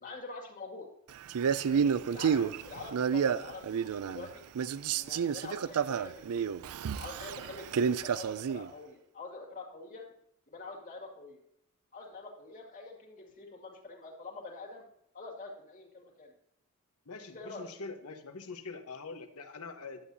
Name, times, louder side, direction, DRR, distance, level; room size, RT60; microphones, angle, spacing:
voice 1, 0.0-0.9 1.7-4.4 4.9-6.5 7.0-10.1 10.5-11.4 11.9-14.9 15.1-16.3 17.2-17.7, left 3 dB, 35° left, -2 dB, 2.1 m, -45 dB
Male speech man speaking, 1.3-4.3 4.5-8.7, right 7 dB, 75° right, 0.4 m, -30 dB
voice 2, 17.0-20.0, left 4 dB, 80° left, 6 dB, 1.1 m, -44 dB
11.5 x 8.2 x 2.7 m, 0.76 s
head